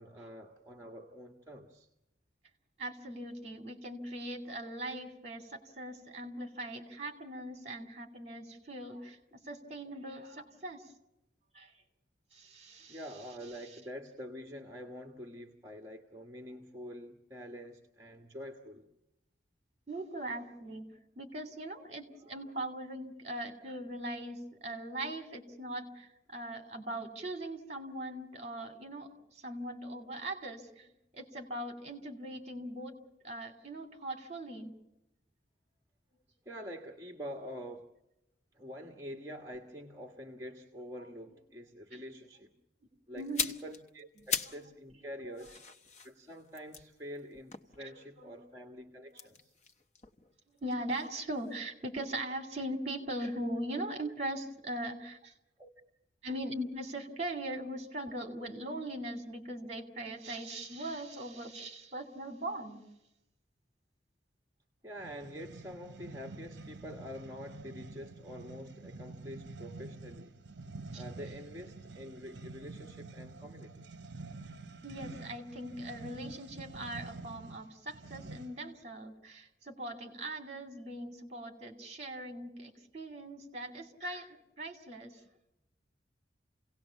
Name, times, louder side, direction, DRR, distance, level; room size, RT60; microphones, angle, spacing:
voice 1, 0.0-1.9 12.9-18.9 36.4-37.9 38.5-42.5 43.1-45.6 46.0-49.5 55.6-55.7 64.8-70.4 70.9-73.9, equal, 15° right, 1.4 m, -46 dB
voice 2, 2.8-10.9 11.5-11.7 12.3-13.0 19.9-33.0 33.2-34.8 40.9-41.0 41.9-42.0 43.1-43.6 44.2-44.6 45.2-45.4 48.2-48.4 50.6-55.3 56.2-62.9 70.9-71.0 74.8-85.2, right 1 dB, 35° right, 2.8 m, -40 dB
sound 1, 43.2-44.7 45.0-48.3 49.1-51.1 51.4-51.6, left 5 dB, 40° left, 0.9 m, -40 dB
sound 2, 65.0-78.7, right 3 dB, 65° right, 0.8 m, -48 dB
28.5 x 18.0 x 7.1 m
head